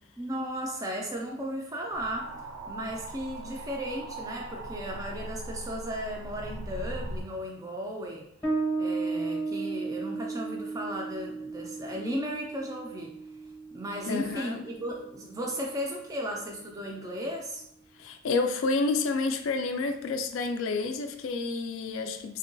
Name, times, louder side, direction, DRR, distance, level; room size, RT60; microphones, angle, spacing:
voice 1, 0.2-2.3 2.7-8.2 8.8-13.1 13.7-17.6, equal, 15° right, -1 dB, 0.3 m, -35 dB
sound 1, 1.9-7.2, right 1 dB, 85° right, 0.5 m, -40 dB
Bass guitar, 8.4-15.6, right 3 dB, 15° left, 0.7 m, -35 dB
voice 2, 14.0-14.7 18.0-22.4, left 3 dB, 65° left, 7 dB, 0.3 m, -29 dB
3.6 x 2.2 x 2.5 m, 0.74 s
head